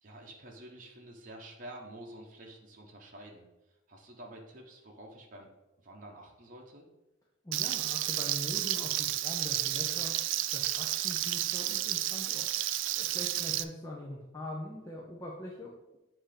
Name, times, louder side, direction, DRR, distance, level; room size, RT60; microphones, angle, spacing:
voice 1, 0.0-5.5 5.8-6.9 13.3-13.6, right 1 dB, 40° right, -1 dB, 0.9 m, -49 dB
voice 2, 7.4-10.2 10.5-12.5 12.9-16.0, left 1 dB, 15° left, -4 dB, 0.7 m, -42 dB
Frying (food), 7.5-13.6, right 14 dB, 65° right, 0.3 m, -31 dB
7.9 x 2.9 x 5.1 m, 0.99 s
head